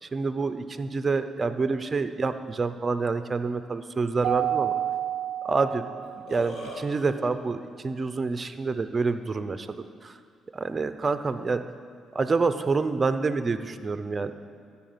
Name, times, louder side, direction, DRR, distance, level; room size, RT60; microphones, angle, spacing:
voice 1, 0.0-4.7 5.4-5.8 6.3-10.2 10.5-11.6 12.1-14.3, right 4 dB, 30° right, 10 dB, 0.6 m, -27 dB
Keyboard (musical), 4.2-6.5, right 11 dB, 70° right, 0.4 m, -29 dB
Burping eructation, 6.0-6.8, left 2 dB, 70° left, 2.4 m, -38 dB
12.5 x 5.8 x 7.9 m, 2.1 s
cardioid pair, 90°, 0 cm